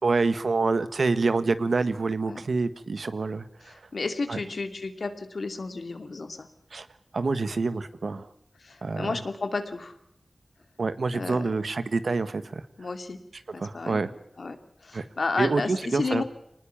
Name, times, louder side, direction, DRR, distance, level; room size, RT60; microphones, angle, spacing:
voice 1, 0.0-3.7 4.3-4.4 6.7-6.9 7.1-8.3 8.8-9.2 10.8-12.6 13.6-14.1 14.9-15.1 15.4-16.2, right 3 dB, 90° right, 12 dB, 1.4 m, -27 dB
voice 2, 3.6-6.5 8.6-9.9 11.1-11.5 12.8-13.2 13.5-14.0 14.4-14.6 14.8-16.2, left 3 dB, 85° left, 8 dB, 2.5 m, -32 dB
25.0 x 19.5 x 7.2 m, 0.75 s
wide cardioid pair, 50°, 0 cm